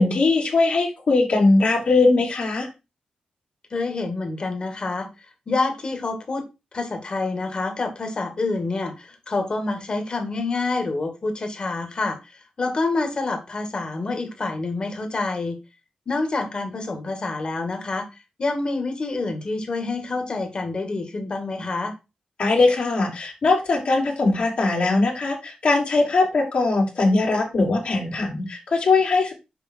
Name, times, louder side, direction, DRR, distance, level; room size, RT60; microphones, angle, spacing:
voice 1, 0.0-2.7 22.4-29.3, left 3 dB, 60° left, -1 dB, 3.1 m, -20 dB
voice 2, 3.7-6.4 6.7-15.6 16.1-18.1 18.4-21.9, left 3 dB, 40° left, 5 dB, 2.3 m, -27 dB
6.8 x 5.3 x 4.6 m, 0.26 s
cardioid pair, 95°, 2 cm